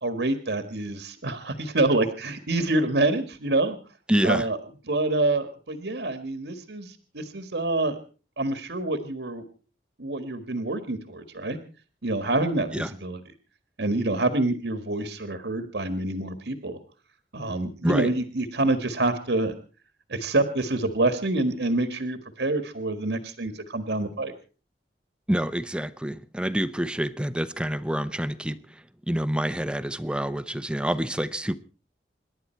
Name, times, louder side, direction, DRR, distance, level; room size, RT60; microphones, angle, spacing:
voice 1, 0.0-3.8 4.2-4.6 4.9-7.9 8.4-9.4 10.0-11.6 12.0-13.2 13.8-16.8 17.3-19.5 20.1-24.3, right 2 dB, 80° right, 10 dB, 1.8 m, -26 dB
voice 2, 4.1-4.4 12.7-12.9 17.8-18.1 25.3-28.6 29.1-31.6, right 1 dB, 5° right, 12 dB, 0.8 m, -27 dB
27.5 x 11.5 x 4.5 m, 0.38 s
head